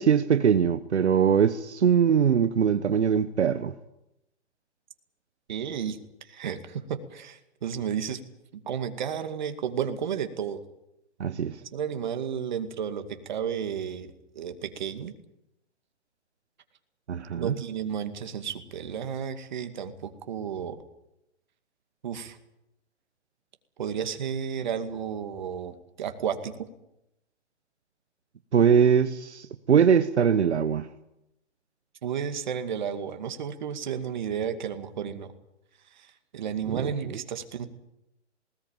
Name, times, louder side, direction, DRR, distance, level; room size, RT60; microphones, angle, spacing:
voice 1, 0.0-3.7 11.2-11.6 17.1-17.5 28.5-30.9 36.7-36.9, right 7 dB, 70° right, 1.3 m, -22 dB
voice 2, 5.5-6.0 6.3-8.2 8.7-10.6 11.6-14.1 14.3-15.1 17.3-20.8 22.0-22.4 23.8-26.7 32.0-35.3 35.9-37.7, right 8 dB, 40° right, 2.3 m, -32 dB
19.5 x 18.5 x 9.0 m
hypercardioid pair, 170°, 35 cm